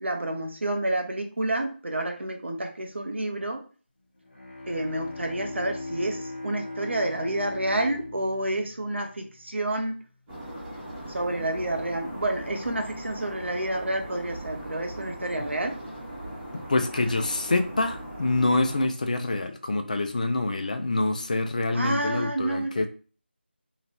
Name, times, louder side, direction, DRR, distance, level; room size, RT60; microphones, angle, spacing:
voice 1, 0.0-3.6 4.7-10.0 11.1-15.8 21.7-22.8, right 1 dB, 80° right, 0.7 m, -29 dB
Bowed string instrument, 4.2-9.8, left 2 dB, 85° left, 1.1 m, -39 dB
sound 1, 10.3-18.9, right 1 dB, 10° right, 0.6 m, -39 dB
voice 2, 16.7-22.9, left 2 dB, 40° left, 0.4 m, -26 dB
2.8 x 2.2 x 2.9 m
figure-of-eight pair, 170°, 6 cm